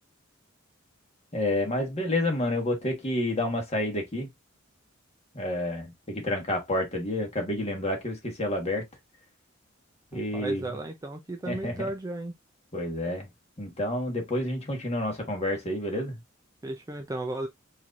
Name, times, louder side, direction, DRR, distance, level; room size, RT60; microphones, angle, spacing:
voice 1, 1.3-4.3 5.3-8.9 10.1-10.7 11.5-11.9 12.7-13.3 13.6-16.2, left 1 dB, 30° left, 1.4 m, -29 dB
voice 2, 10.1-12.3 16.6-17.5, right 1 dB, 15° right, 0.4 m, -34 dB
4.5 x 2.7 x 2.5 m
head